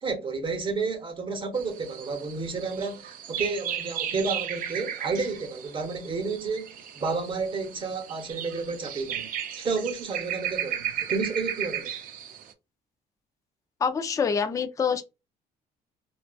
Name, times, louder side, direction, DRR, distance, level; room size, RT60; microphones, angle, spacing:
voice 1, 0.0-9.3 9.6-12.0, right 4 dB, 30° right, 0.8 m, -31 dB
sound 1, 1.5-12.5, right 10 dB, 55° right, 0.5 m, -35 dB
voice 2, 13.8-15.0, left 6 dB, 20° left, 0.3 m, -26 dB
2.5 x 2.3 x 2.2 m
cardioid pair, 110°, 17 cm